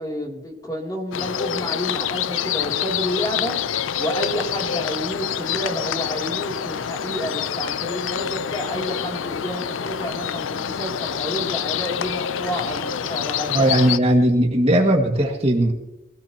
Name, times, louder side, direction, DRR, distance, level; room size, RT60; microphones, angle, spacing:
voice 1, 0.0-3.6 4.0-13.7, equal, 20° left, 0 dB, 2.8 m, -30 dB
sound 1, 1.1-14.0, left 8 dB, 75° left, 0.5 m, -27 dB
voice 2, 13.5-15.7, right 1 dB, 30° right, 1 dB, 1.9 m, -18 dB
24.0 x 17.0 x 2.9 m, 0.85 s
head